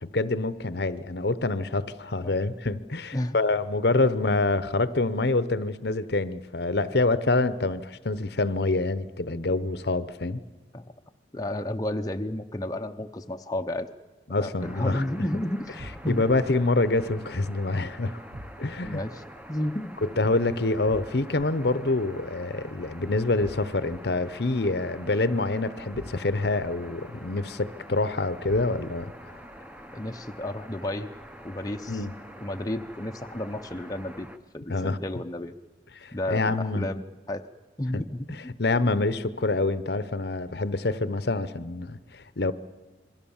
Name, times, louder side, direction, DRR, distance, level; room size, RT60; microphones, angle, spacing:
voice 1, 0.0-10.4 14.3-15.0 16.1-18.2 18.6-19.0 20.2-29.1 31.9-32.1 34.7-35.0 36.0-36.9 37.9-38.0 38.6-42.5, left 2 dB, 60° left, 0.9 m, -26 dB
voice 2, 11.3-13.9 14.4-15.7 16.0-16.2 18.8-19.2 19.5-20.0 29.9-31.1 31.4-32.0 32.4-34.3 34.5-35.5 36.1-37.4 37.8-38.5, left 1 dB, 20° left, 0.8 m, -32 dB
sound 1, 14.6-34.4, equal, 5° right, 1.0 m, -46 dB
sound 2, 15.8-16.4 18.3-18.9 20.9-21.4 23.4-24.0 25.9-26.5 28.5-29.0, right 1 dB, 35° right, 1.1 m, -42 dB
28.0 x 22.5 x 7.2 m
head